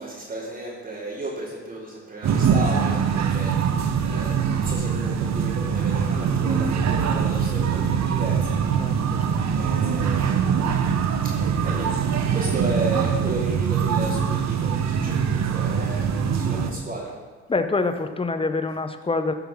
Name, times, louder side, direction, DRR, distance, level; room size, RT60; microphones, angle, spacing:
voice 1, 0.0-3.5 4.0-8.5 8.8-9.3 9.5-10.5 11.2-11.3 11.6-11.9 12.3-17.1, right 2 dB, 25° right, -7 dB, 3.2 m, -33 dB
sound 1, 2.2-16.7, right 7 dB, 60° right, 1.1 m, -23 dB
voice 2, 17.5-19.3, left 3 dB, 20° left, 8 dB, 0.9 m, -25 dB
15.0 x 5.7 x 5.7 m, 1.5 s
cardioid pair, 90°, 30 cm